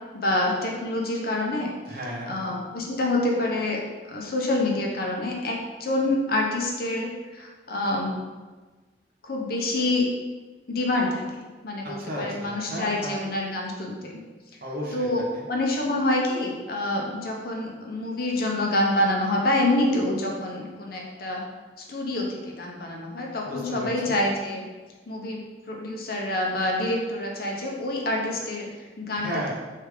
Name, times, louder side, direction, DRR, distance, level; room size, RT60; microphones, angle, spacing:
voice 1, 0.1-1.7 2.3-8.2 9.2-10.1 10.7-14.2 14.9-15.2 15.5-21.4 21.9-24.7 25.1-25.4 25.7-29.3, left 1 dB, 55° left, -1 dB, 0.8 m, -27 dB
voice 2, 1.9-2.3 11.8-13.3 14.6-15.1 15.3-15.5 23.5-24.2 29.2-29.5, equal, 50° right, -3 dB, 1.0 m, -34 dB
3.3 x 3.3 x 4.8 m, 1.3 s
head